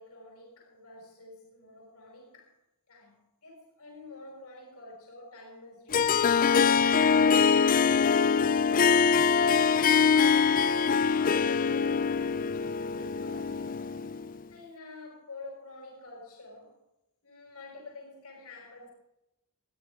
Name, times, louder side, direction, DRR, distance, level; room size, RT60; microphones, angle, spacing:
voice 1, 0.0-2.6 2.9-9.3 9.9-10.7 11.2-13.8 14.5-16.8 17.2-18.9, left 1 dB, 75° left, 5.9 m, -48 dB
Harp, 5.9-14.4, left 6 dB, 40° left, 0.4 m, -23 dB
21.5 x 14.0 x 3.7 m
head